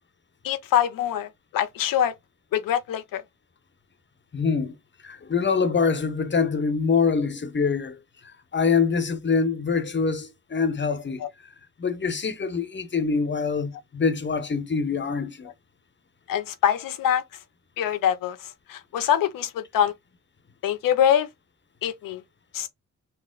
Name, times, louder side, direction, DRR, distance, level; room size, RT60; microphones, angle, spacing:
voice 1, 0.4-2.1 2.5-3.2 11.2-11.3 16.3-17.2 17.8-18.4 18.7-19.9 20.6-21.3 21.8-22.2 22.5-22.7, left 10 dB, 90° left, 0.5 m, -24 dB
voice 2, 4.3-4.7 5.0-8.0 8.5-11.2 11.8-15.5, left 5 dB, 35° left, 0.9 m, -24 dB
4.2 x 2.1 x 3.7 m
cardioid pair, 65°, 33 cm